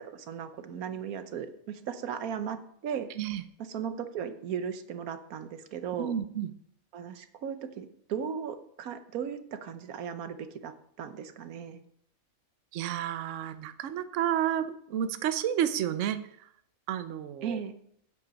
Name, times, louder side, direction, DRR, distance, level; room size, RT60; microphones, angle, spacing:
voice 1, 0.0-2.6 2.8-3.1 3.7-6.1 6.9-11.8 17.4-17.7, right 7 dB, 85° right, 10 dB, 1.3 m, -36 dB
voice 2, 6.0-6.5 12.7-16.5 16.9-17.6, right 10 dB, 65° right, 10 dB, 0.9 m, -31 dB
8.6 x 7.9 x 5.2 m, 0.68 s
omnidirectional pair, 1.5 m